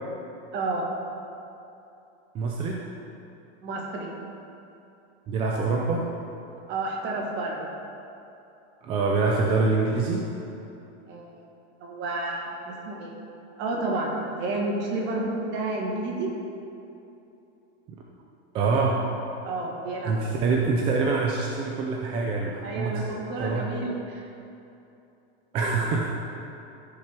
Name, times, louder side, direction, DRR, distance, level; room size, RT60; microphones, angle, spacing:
voice 1, 0.5-0.9 3.6-4.1 6.7-7.7 11.1-11.4 11.8-13.1 13.6-16.3 19.4-20.5 22.6-24.2, right 2 dB, 30° right, -1 dB, 1.7 m, -30 dB
voice 2, 2.3-2.8 5.3-6.1 8.8-10.3 17.9-18.0 18.5-19.1 20.1-23.0 23.4-23.7 25.5-26.1, right 3 dB, 15° right, -1 dB, 0.3 m, -25 dB
13.5 x 6.7 x 4.6 m, 2.8 s
supercardioid pair, 170°, 34 cm